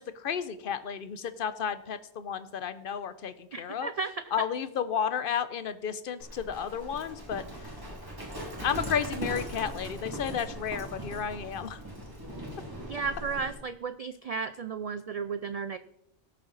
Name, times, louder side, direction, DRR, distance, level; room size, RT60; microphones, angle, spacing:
voice 1, 0.0-3.9 4.3-7.8 8.6-11.8, left 7 dB, 55° left, 13 dB, 0.9 m, -32 dB
voice 2, 3.5-4.1 12.9-15.8, right 5 dB, 60° right, 12 dB, 0.4 m, -34 dB
Livestock farm animals working animals, 6.2-13.6, right 1 dB, 20° right, 2.5 m, -40 dB
18.0 x 6.9 x 4.0 m, 0.77 s
omnidirectional pair, 1.1 m